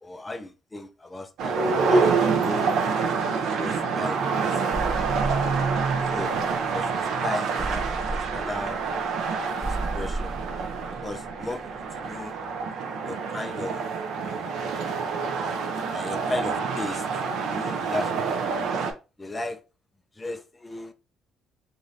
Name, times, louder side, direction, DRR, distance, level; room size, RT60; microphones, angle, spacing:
voice 1, 0.0-2.7 3.6-4.2 4.5-4.6 6.1-6.3 6.7-8.8 9.7-10.4 11.0-12.4 13.0-13.9 14.2-14.7 15.9-17.1 17.4-18.8 19.2-19.6 20.2-20.9, left 2 dB, 15° left, 0.3 m, -35 dB
sound 1, 1.4-18.9, right 5 dB, 65° right, 0.5 m, -27 dB
sound 2, 4.7-7.1 7.6-12.2, right 2 dB, 10° right, 1.0 m, -35 dB
2.6 x 2.6 x 3.0 m
cardioid pair, 140°, 0 cm